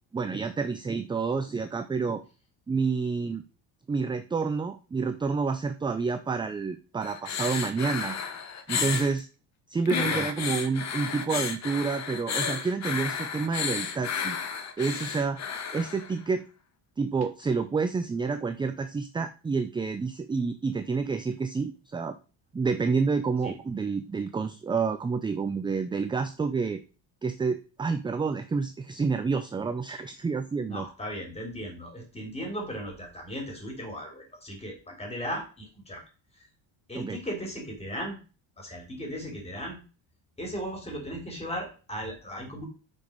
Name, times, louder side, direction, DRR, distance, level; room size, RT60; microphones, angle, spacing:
voice 1, 0.1-2.2 2.7-3.4 3.9-8.2 8.7-9.3 9.7-14.4 14.8-15.4 15.7-16.4 17.0-22.1 22.5-26.8 27.2-30.9 37.0-37.2, right 4 dB, 10° right, 9 dB, 0.4 m, -29 dB
sound 1, 7.0-9.1 9.9-16.2 17.2-17.3, left 6 dB, 35° left, 1.1 m, -32 dB
voice 2, 30.6-36.0 36.9-38.2 38.6-39.8 40.4-42.7, equal, 15° left, 1 dB, 3.6 m, -36 dB
9.2 x 5.2 x 5.3 m, 0.34 s
cardioid pair, 150°, 44 cm